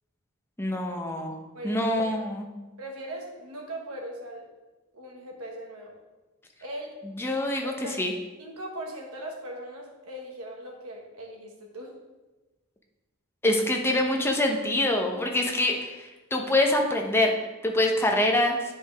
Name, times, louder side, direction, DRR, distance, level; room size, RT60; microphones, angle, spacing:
voice 1, 0.6-1.3 1.6-2.4 7.2-8.1 13.4-17.3 17.6-18.6, left 1 dB, 10° left, 2 dB, 0.8 m, -25 dB
voice 2, 1.5-2.1 2.8-4.4 4.9-5.9 6.6-7.0 7.3-8.0 8.4-12.0, right 1 dB, 85° right, 0 dB, 1.5 m, -39 dB
10.5 x 4.8 x 3.4 m, 1.1 s
head